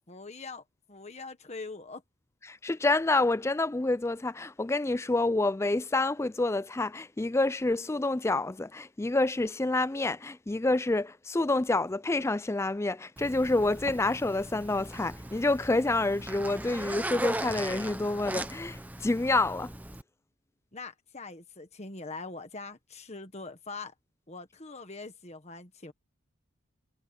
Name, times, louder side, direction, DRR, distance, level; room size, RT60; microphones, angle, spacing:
voice 1, 0.1-2.0 20.7-23.9 24.3-25.9, left 3 dB, 30° left, 1.5 m, -43 dB
voice 2, 2.4-19.7, left 2 dB, 10° left, 0.3 m, -28 dB
Zipper (clothing), 13.2-20.0, right 1 dB, 5° right, 0.8 m, -38 dB
head